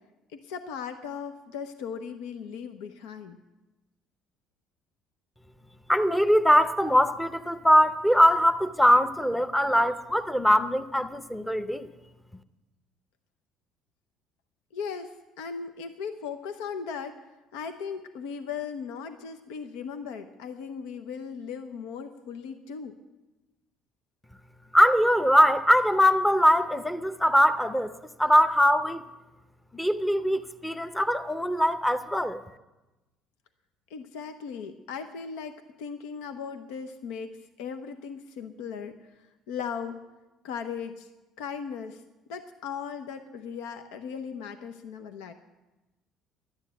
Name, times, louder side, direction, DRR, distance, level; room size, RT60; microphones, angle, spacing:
voice 1, 0.3-3.4 14.7-17.2 17.5-23.0 33.9-39.0 39.5-40.0 40.4-41.1 41.4-42.0 42.3-45.3, left 6 dB, 90° left, 0.8 m, -37 dB
voice 2, 5.9-11.9 24.7-27.9 28.2-29.0 29.7-32.4, equal, 5° left, 0.7 m, -22 dB
12.0 x 9.9 x 8.2 m
cardioid pair, 100°, 0 cm